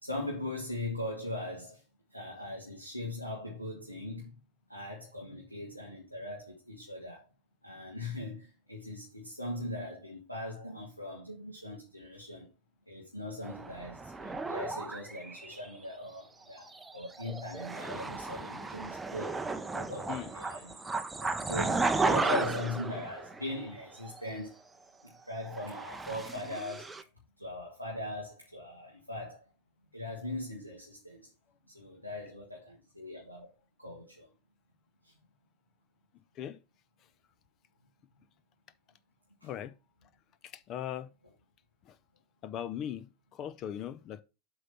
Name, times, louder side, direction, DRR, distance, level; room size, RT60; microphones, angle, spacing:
voice 1, 0.0-1.8 2.1-4.3 4.7-7.3 7.6-12.5 12.9-20.9 21.2-24.6 25.0-26.9 27.4-29.5 29.9-31.3 31.7-33.5 33.8-34.3 35.0-35.1 39.4-39.5, left 1 dB, 90° left, 1.9 m, -40 dB
sound 1, 13.4-15.7 16.6-23.8 24.0-24.3 25.5-27.0, right 3 dB, 10° right, 0.7 m, -34 dB
voice 2, 39.4-39.7 40.4-41.1 41.8-42.0 42.4-44.2, left 10 dB, 35° left, 0.6 m, -39 dB
7.8 x 4.0 x 5.6 m
figure-of-eight pair, 90°, 0 cm